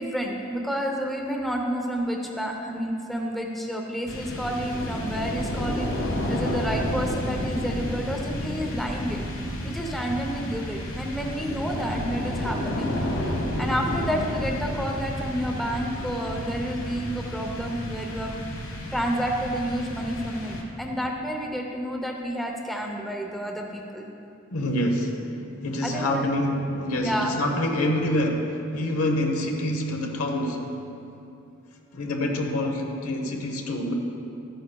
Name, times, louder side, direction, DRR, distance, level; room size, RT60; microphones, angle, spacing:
voice 1, 0.0-9.2 9.6-13.0 13.6-18.4 18.9-24.0 25.8-26.2 27.0-27.3, equal, ahead, 1 dB, 0.6 m, -30 dB
sound 1, 4.1-21.0, left 1 dB, 65° left, 1.3 m, -31 dB
voice 2, 24.5-25.3 25.6-30.7 31.9-33.9, left 1 dB, 80° left, 2 dB, 1.0 m, -26 dB
13.5 x 9.1 x 2.3 m, 2.8 s
head